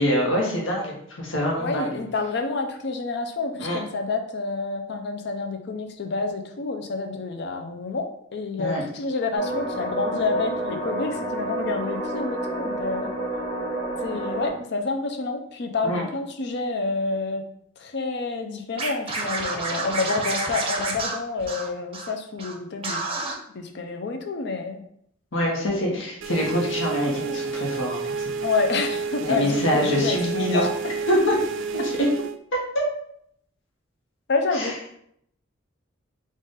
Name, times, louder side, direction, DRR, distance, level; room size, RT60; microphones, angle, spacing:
voice 1, 0.0-2.0 3.6-3.8 8.6-8.8 15.8-16.0 25.3-28.3 29.2-30.7 31.1-31.4 31.7-31.9 32.7-32.8 34.5-34.7, equal, 75° left, -2 dB, 1.1 m, -25 dB
voice 2, 1.6-13.1 14.0-17.4 17.8-23.0 23.5-24.8 28.4-30.2 30.5-30.7 34.3-35.0, left 3 dB, 60° left, 6 dB, 0.5 m, -28 dB
sound 1, 9.3-14.5, right 2 dB, 15° left, 1.2 m, -29 dB
Scratching (performance technique), 18.8-22.1 22.4-22.5 22.8-23.3, right 3 dB, 30° right, 0.6 m, -29 dB
sound 2, 26.2-32.4, right 5 dB, 70° right, 0.3 m, -30 dB
3.9 x 2.5 x 3.9 m, 0.69 s
head